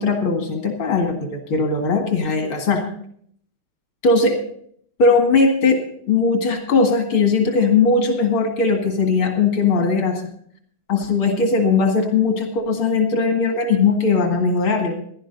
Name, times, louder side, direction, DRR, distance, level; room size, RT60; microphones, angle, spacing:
voice 1, 0.0-2.8 4.0-4.4 5.0-5.8 6.1-10.2 10.9-15.0, left 4 dB, 85° left, 3 dB, 2.8 m, -19 dB
16.5 x 11.5 x 4.0 m, 0.63 s
omnidirectional pair, 2.2 m